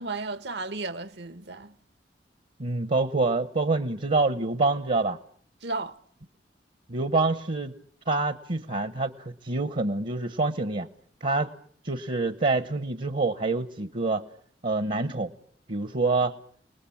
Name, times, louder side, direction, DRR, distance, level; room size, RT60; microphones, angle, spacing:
voice 1, 0.0-1.7 5.6-6.0, right 3 dB, 70° right, 1.3 m, -34 dB
voice 2, 2.6-5.2 6.9-7.7 8.1-10.9 11.2-11.5 11.8-14.2 14.6-15.3 15.7-16.4, right 3 dB, 50° right, 1.0 m, -26 dB
28.5 x 20.0 x 8.6 m
head